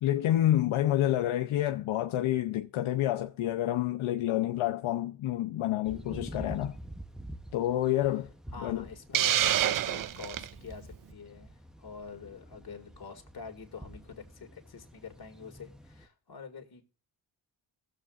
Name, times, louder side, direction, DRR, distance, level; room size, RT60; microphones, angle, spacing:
voice 1, 0.0-6.8 7.5-8.3 8.6-8.8, left 13 dB, 80° left, 0.7 m, -28 dB
sound 1, 5.8-16.1, right 1 dB, ahead, 0.8 m, -47 dB
voice 2, 8.5-16.8, left 5 dB, 50° left, 2.0 m, -46 dB
Hiss, 9.1-10.5, right 11 dB, 45° right, 0.5 m, -27 dB
19.0 x 7.5 x 2.4 m
cardioid pair, 70°, 48 cm